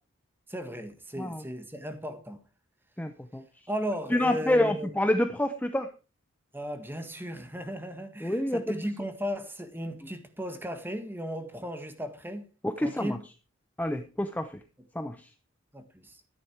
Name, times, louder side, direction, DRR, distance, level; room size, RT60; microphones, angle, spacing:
voice 1, 0.5-2.4 3.7-4.9 6.5-12.5 12.8-13.1 15.7-16.2, equal, 10° right, 1.6 m, -35 dB
voice 2, 3.0-3.4 4.1-5.9 8.2-8.6 12.6-13.2 13.8-14.6 14.9-15.3, left 1 dB, 5° left, 0.7 m, -28 dB
12.5 x 10.5 x 4.7 m
head